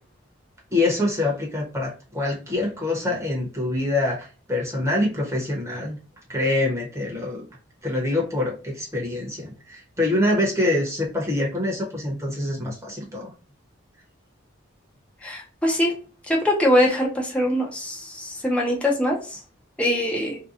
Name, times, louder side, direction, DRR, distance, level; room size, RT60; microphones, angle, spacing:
voice 1, 0.7-6.0 6.3-7.5 7.8-13.3, left 2 dB, 15° right, -2 dB, 0.9 m, -25 dB
voice 2, 15.2-15.9 16.3-19.4 19.8-20.4, left 1 dB, 5° left, -2 dB, 0.6 m, -22 dB
2.7 x 2.2 x 2.4 m, 0.37 s
head